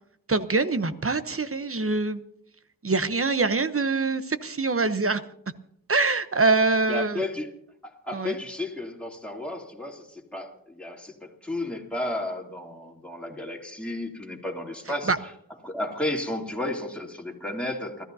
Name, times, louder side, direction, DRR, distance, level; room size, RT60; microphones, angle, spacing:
voice 1, 0.3-2.2 2.8-5.2 5.9-7.3 8.1-8.4 15.1-15.2, right 3 dB, 40° right, 11 dB, 1.0 m, -24 dB
voice 2, 6.9-7.5 7.8-15.3 15.6-18.0, left 1 dB, 5° left, -1 dB, 3.0 m, -33 dB
29.5 x 14.0 x 2.8 m, 0.71 s
cardioid pair, 50°, 36 cm